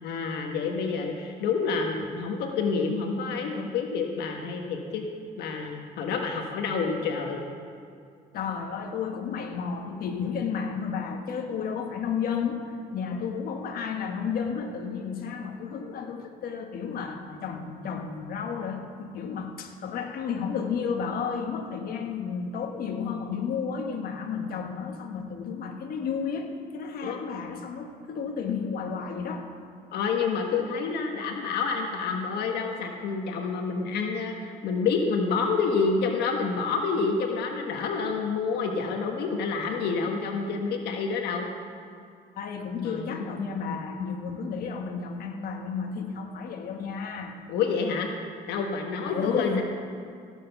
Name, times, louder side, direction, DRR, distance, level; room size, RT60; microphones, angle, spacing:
voice 1, 0.0-5.0 5.4-7.5 27.0-27.2 29.9-41.5 42.8-43.9 47.5-48.1 48.5-49.6, left 5 dB, 80° left, 2 dB, 1.3 m, -28 dB
voice 2, 8.3-12.6 12.9-29.5 42.3-47.4 49.0-49.6, left 6 dB, 60° left, 3 dB, 1.4 m, -32 dB
16.5 x 7.5 x 5.9 m, 2.4 s
cardioid pair, 110°, 17 cm